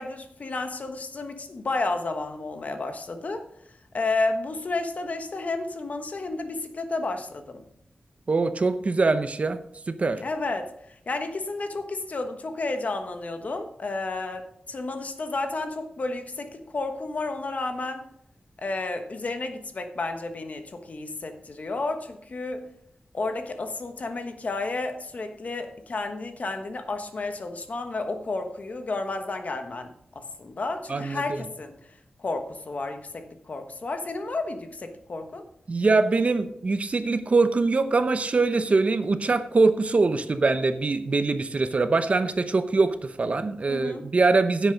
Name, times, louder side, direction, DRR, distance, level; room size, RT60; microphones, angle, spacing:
voice 1, 0.0-3.4 3.9-7.6 10.2-18.1 18.6-22.7 23.1-35.4 43.7-44.1, left 3 dB, 55° left, 7 dB, 1.3 m, -32 dB
voice 2, 8.3-9.6 9.9-10.2 30.9-31.4 35.7-44.7, right 3 dB, 45° right, 10 dB, 0.8 m, -23 dB
10.5 x 8.2 x 5.2 m, 0.73 s
wide cardioid pair, 125°, 3 cm